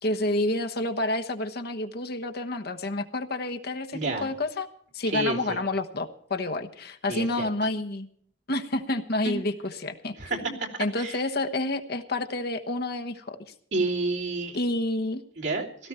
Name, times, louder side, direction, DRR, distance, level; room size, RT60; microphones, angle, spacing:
voice 1, 0.0-4.7 4.9-8.1 8.5-13.5 14.5-15.2, left 2 dB, 55° left, 6 dB, 1.2 m, -29 dB
voice 2, 3.9-4.3 5.1-5.6 7.1-7.5 9.2-9.4 10.2-10.7 11.0-11.2 13.7-14.6 15.4-15.9, right 2 dB, 65° right, -2 dB, 3.1 m, -30 dB
17.0 x 14.0 x 4.4 m, 0.63 s
head